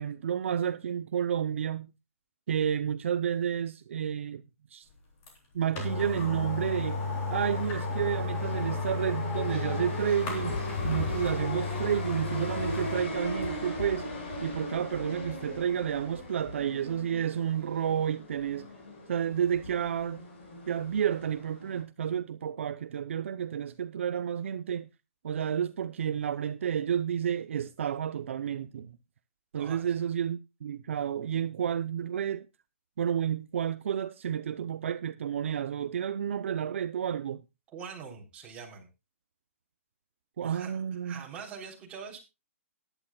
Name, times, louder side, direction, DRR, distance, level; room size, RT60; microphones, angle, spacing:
voice 1, 0.0-1.9 2.5-4.4 4.7-4.9 5.5-7.0 7.3-10.6 10.8-14.1 14.4-18.7 19.1-20.2 20.7-24.9 25.2-29.0 29.5-32.5 33.0-37.4 40.4-41.2, right 9 dB, 60° right, 0.7 m, -31 dB
sound 1, 5.3-5.4 5.8-13.0 13.4-13.5, left 3 dB, 25° left, 3.8 m, -33 dB
sound 2, 5.9-21.8, left 2 dB, 50° left, 5.7 m, -39 dB
voice 2, 29.5-29.9 37.7-38.9 40.4-40.8 41.0-42.2, right 6 dB, 15° right, 3.5 m, -43 dB
19.0 x 11.0 x 2.3 m
hypercardioid pair, 165°, 8 cm